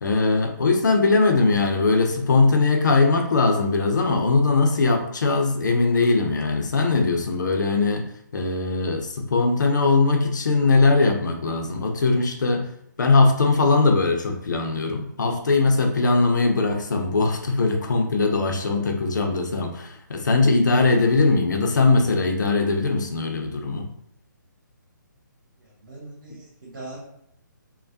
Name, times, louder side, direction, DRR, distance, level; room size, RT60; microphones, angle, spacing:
voice 1, 0.0-12.7 13.0-23.9, left 3 dB, 65° left, 3 dB, 0.6 m, -20 dB
voice 2, 19.0-19.3 25.6-27.0, right 2 dB, 65° right, -5 dB, 1.2 m, -42 dB
3.2 x 2.1 x 2.6 m, 0.74 s
figure-of-eight pair, 140°, 11 cm